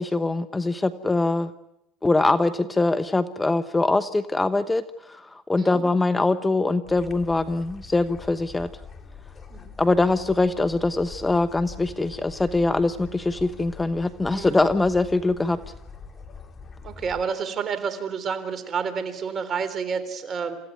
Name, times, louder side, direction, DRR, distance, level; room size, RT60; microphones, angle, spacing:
voice 1, 0.0-1.5 2.0-8.7 9.8-15.6, left 2 dB, 15° left, 12 dB, 1.0 m, -23 dB
sound 1, 6.8-17.2, left 5 dB, 30° left, 2.2 m, -43 dB
voice 2, 14.2-14.6 16.8-20.6, right 6 dB, 40° right, 11 dB, 3.5 m, -29 dB
28.0 x 15.5 x 9.5 m, 0.86 s
supercardioid pair, 95°, 0 cm